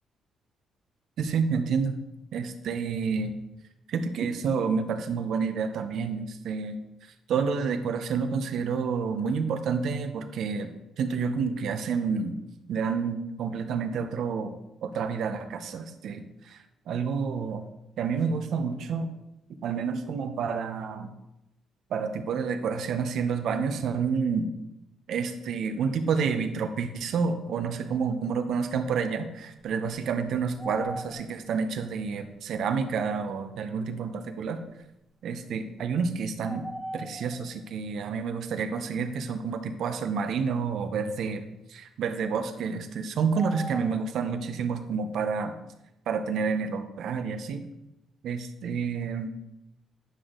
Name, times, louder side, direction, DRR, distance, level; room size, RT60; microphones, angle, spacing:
voice 1, 1.2-2.0 2.3-3.3 3.9-6.8 7.3-10.7 11.0-12.3 12.7-14.5 14.8-16.2 16.9-17.7 18.0-19.1 19.6-21.1 21.9-24.5 25.1-34.6 35.2-36.6 36.9-41.4 41.7-45.5 46.1-47.6 48.2-49.3, right 5 dB, 70° right, 8 dB, 0.9 m, -29 dB
sound 1, 28.8-28.9 29.6-31.6 32.3-32.4 34.0-34.1 36.4-37.6 43.4-44.2, equal, 5° left, 0.4 m, -39 dB
9.9 x 6.2 x 3.8 m, 0.90 s
cardioid pair, 90°, 0 cm